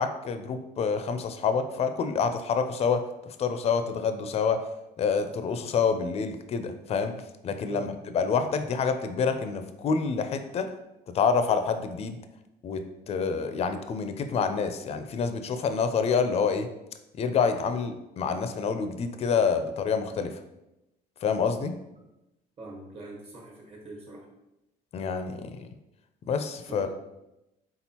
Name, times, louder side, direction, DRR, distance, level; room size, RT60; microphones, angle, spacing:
voice 1, 0.0-3.1 3.4-4.6 5.0-7.1 7.4-7.9 8.1-10.7 11.1-12.2 12.6-16.7 17.2-20.3 21.2-21.7 24.9-25.7 26.3-26.9, left 5 dB, 35° left, 8 dB, 0.4 m, -27 dB
voice 2, 22.6-24.3 26.7-26.9, right 2 dB, 40° right, -2 dB, 1.4 m, -42 dB
4.3 x 3.7 x 2.8 m, 0.91 s
cardioid pair, 110°, 17 cm